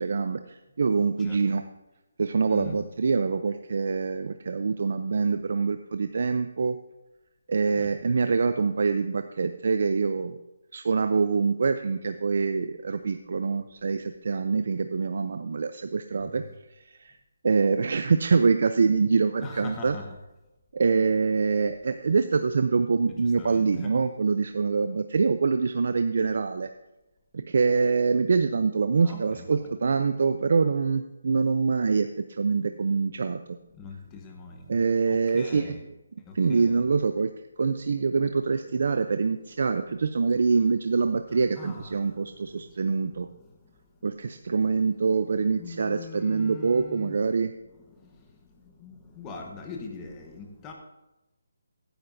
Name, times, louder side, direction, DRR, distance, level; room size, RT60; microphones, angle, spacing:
voice 1, 0.0-1.6 2.2-6.8 7.5-10.4 10.7-16.4 16.7-17.1 17.4-20.0 20.7-26.7 27.3-33.4 34.7-35.8 36.3-37.3 37.6-43.3 44.0-47.5, right 4 dB, 55° right, 9 dB, 0.5 m, -25 dB
voice 2, 2.5-2.8 7.7-7.9 16.2-16.4 19.4-20.2 23.1-24.0 29.0-29.6 33.7-34.7 35.1-35.8 36.2-36.7 41.3-43.5 45.4-47.2 47.9-48.3 48.6-50.7, left 3 dB, 15° left, 2 dB, 1.1 m, -43 dB
14.5 x 10.5 x 2.7 m, 1.0 s
hypercardioid pair, 170°, 0 cm